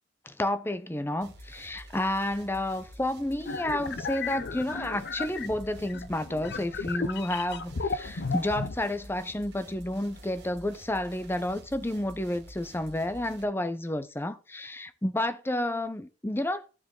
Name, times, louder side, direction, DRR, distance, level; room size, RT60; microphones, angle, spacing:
voice 1, 0.3-16.6, left 1 dB, 10° left, 0.6 m, -31 dB
sound 1, 1.2-13.4, right 1 dB, 60° right, 2.0 m, -49 dB
sound 2, 3.5-8.8, left 4 dB, 60° left, 0.6 m, -34 dB
12.0 x 5.1 x 3.8 m
head